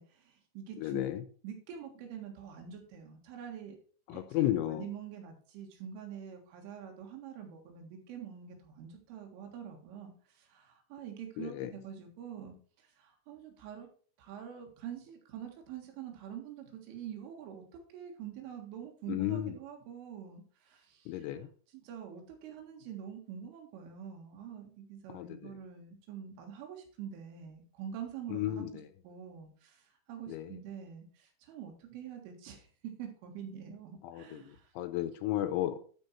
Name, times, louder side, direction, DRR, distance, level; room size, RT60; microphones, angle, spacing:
voice 1, 0.0-1.0 1.4-3.8 4.1-12.6 13.0-13.9 14.2-21.3 21.7-28.7 29.0-32.7 33.0-34.7, right 8 dB, 80° right, 3 dB, 4.2 m, -46 dB
voice 2, 0.8-1.2 4.1-4.9 11.4-11.7 19.1-19.5 21.1-21.5 25.1-25.6 28.3-28.8 30.3-30.6 34.0-35.8, left 13 dB, 80° left, 11 dB, 2.9 m, -34 dB
12.0 x 5.1 x 4.4 m, 0.43 s
omnidirectional pair, 5.7 m